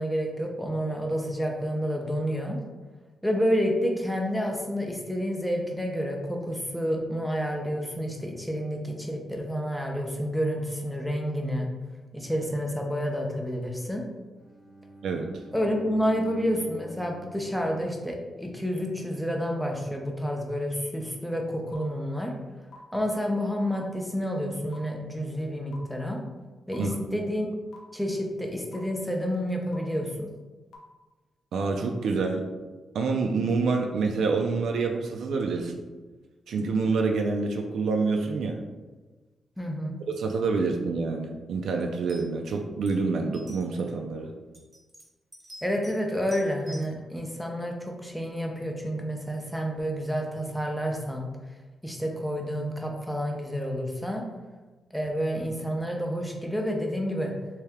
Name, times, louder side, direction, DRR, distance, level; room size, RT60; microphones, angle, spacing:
voice 1, 0.0-2.6 3.2-11.7 12.1-14.1 15.5-22.3 22.9-26.2 26.7-27.5 27.9-30.3 39.6-40.0 45.6-51.3 51.8-54.3 54.9-57.3, equal, ahead, 1 dB, 0.5 m, -29 dB
Bowed string instrument, 14.3-18.5, right 1 dB, 20° left, 0.8 m, -49 dB
sound 1, 21.7-21.8 22.7-22.8 23.7-23.8 24.7-24.8 25.7-25.8 26.7-26.8 27.7-27.8 28.7-28.8 29.7-29.8 30.7-30.8, left 5 dB, 90° left, 0.7 m, -46 dB
voice 2, 31.5-32.4 32.9-35.8 36.5-38.6 40.1-44.3, right 4 dB, 75° right, 2 dB, 0.3 m, -27 dB
sound 2, 41.8-41.9 42.1-42.5 42.9-43.0 43.3-43.9 44.5-46.0 46.3-46.9, right 1 dB, 20° right, 1.0 m, -47 dB
3.3 x 2.7 x 3.4 m, 1.2 s
wide cardioid pair, 135°, 0 cm